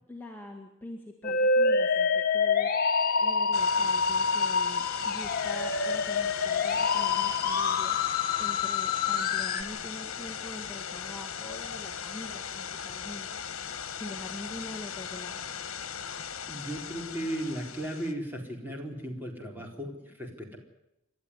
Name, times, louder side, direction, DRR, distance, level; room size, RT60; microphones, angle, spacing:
voice 1, 0.1-2.7 3.2-13.3 14.0-15.4, left 1 dB, 10° left, -1 dB, 2.0 m, -44 dB
Musical instrument, 1.2-9.6, left 4 dB, 45° left, 1.7 m, -26 dB
sound 1, 3.5-18.1, left 7 dB, 70° left, 1.6 m, -38 dB
voice 2, 16.5-20.6, right 1 dB, 10° right, 1 dB, 4.0 m, -36 dB
29.0 x 12.5 x 9.8 m, 0.91 s
head